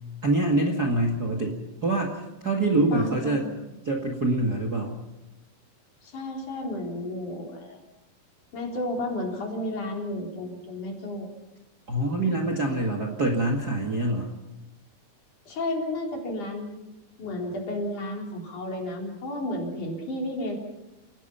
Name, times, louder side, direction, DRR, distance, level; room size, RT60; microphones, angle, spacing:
voice 1, 0.2-1.6 1.8-3.5 3.8-5.0 11.9-14.3, right 2 dB, 35° right, 1 dB, 1.9 m, -25 dB
voice 2, 2.9-3.5 6.0-7.8 8.5-11.3 15.5-16.7 17.2-20.6, left 1 dB, 55° left, 1 dB, 5.2 m, -32 dB
30.0 x 17.5 x 5.7 m, 1.0 s
omnidirectional pair, 4.3 m